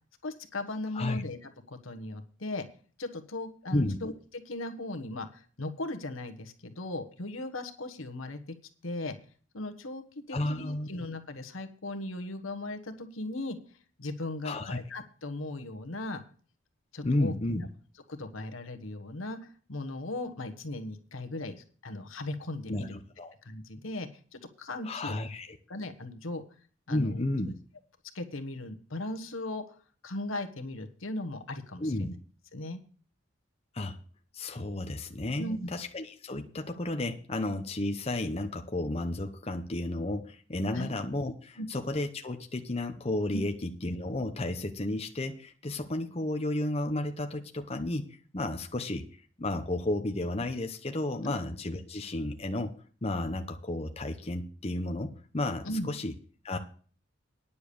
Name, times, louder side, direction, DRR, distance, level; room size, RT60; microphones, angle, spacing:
voice 1, 0.2-2.6 3.0-8.5 8.8-9.1 9.5-13.6 14.0-16.2 16.9-17.3 18.1-23.0 23.4-25.2 25.7-26.4 26.9-27.2 28.1-29.6 30.0-32.1 32.5-32.8 35.4-35.7 40.7-40.9 41.6-41.7 43.3-43.4 51.2-51.3 55.6-55.9, left 2 dB, 75° left, 7 dB, 1.3 m, -37 dB
voice 2, 10.3-10.9 14.4-14.8 17.0-17.7 22.7-22.9 23.2-23.3 24.8-25.6 26.9-27.5 31.8-32.1 33.7-34.0 34.3-48.1 48.3-52.7 53.0-56.1 56.4-56.6, left 1 dB, 30° left, 5 dB, 0.9 m, -32 dB
10.0 x 6.9 x 6.9 m, 0.43 s
head